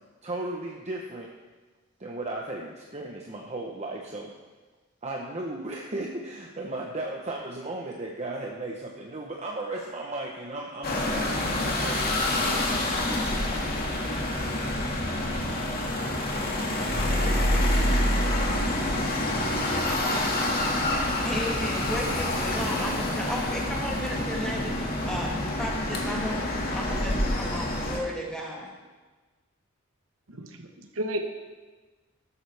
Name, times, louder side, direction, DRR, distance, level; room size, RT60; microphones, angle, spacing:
voice 1, 0.2-1.3 2.0-4.3 5.0-12.2 12.8-13.4, right 2 dB, 35° right, -1 dB, 1.0 m, -35 dB
sound 1, 10.8-28.0, left 1 dB, 50° left, 2.1 m, -27 dB
sound 2, 20.5-26.2, left 1 dB, 35° left, 1.7 m, -44 dB
voice 2, 21.2-24.8 25.0-26.4 26.7-28.7, equal, 5° left, -4 dB, 2.7 m, -34 dB
voice 3, 30.3-31.3, right 1 dB, 80° right, 4 dB, 1.3 m, -33 dB
14.0 x 12.5 x 3.5 m, 1.3 s
head